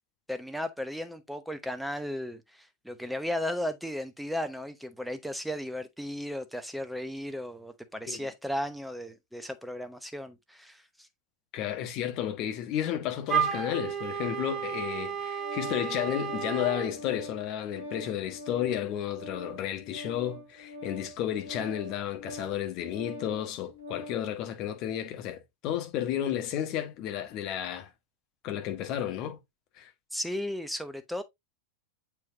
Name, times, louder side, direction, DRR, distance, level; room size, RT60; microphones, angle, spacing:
voice 1, 0.3-10.8 30.1-31.2, left 1 dB, ahead, 0.9 m, -35 dB
voice 2, 11.5-27.9 28.4-29.4 29.8-29.9, left 11 dB, 40° left, 1.3 m, -32 dB
Wind instrument woodwind instrument, 13.3-16.9, right 8 dB, 20° right, 1.6 m, -32 dB
Organ, 14.9-24.3, left 1 dB, 60° left, 1.6 m, -44 dB
7.5 x 4.6 x 2.7 m
figure-of-eight pair, 90°, 0 cm